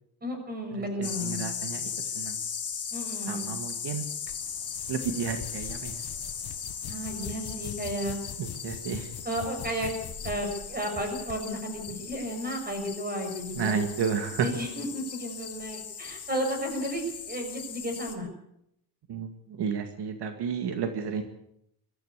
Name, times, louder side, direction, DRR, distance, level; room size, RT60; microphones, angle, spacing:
voice 1, 0.2-1.5 2.9-3.5 6.9-8.2 9.2-9.9 10.2-13.8 14.4-18.3, equal, 20° right, 4 dB, 6.4 m, -33 dB
voice 2, 0.7-2.4 3.3-4.0 4.9-6.0 8.4-9.1 13.6-14.5 19.1-21.2, right 6 dB, 75° right, 7 dB, 2.2 m, -32 dB
sound 1, 1.0-18.1, left 7 dB, 35° left, 2.6 m, -38 dB
sound 2, 4.3-11.4, left 10 dB, 60° left, 1.3 m, -43 dB
23.0 x 14.0 x 8.2 m, 0.76 s
cardioid pair, 170°, 41 cm